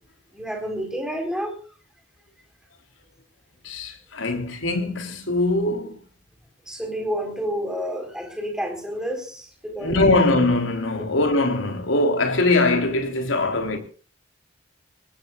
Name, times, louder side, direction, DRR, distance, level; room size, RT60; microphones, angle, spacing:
voice 1, 0.3-1.6 6.7-10.0, equal, 5° right, 4.3 m, -29 dB
voice 2, 3.6-6.0 9.8-13.8, left 2 dB, 80° left, 3.5 m, -22 dB
23.5 x 20.0 x 2.4 m
head